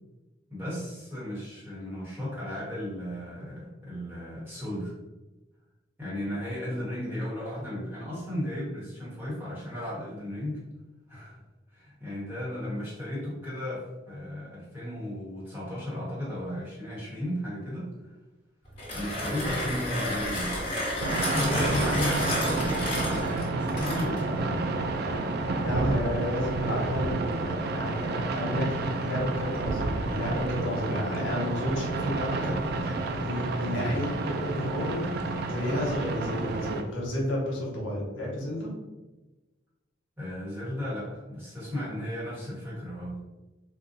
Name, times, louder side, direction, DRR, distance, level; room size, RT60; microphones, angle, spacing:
voice 1, 0.5-4.9 6.0-10.6 11.1-11.4 11.7-18.1 18.9-24.7 40.2-43.2, left 1 dB, 10° right, -8 dB, 1.2 m, -35 dB
Mechanisms, 18.6-24.3, left 1 dB, 30° left, 1.2 m, -31 dB
sound 1, 21.0-36.8, right 3 dB, 55° right, 0.3 m, -30 dB
voice 2, 25.6-28.7 29.0-32.6 32.8-38.7, equal, 85° left, -4 dB, 1.0 m, -31 dB
3.8 x 2.3 x 2.5 m, 1.1 s
head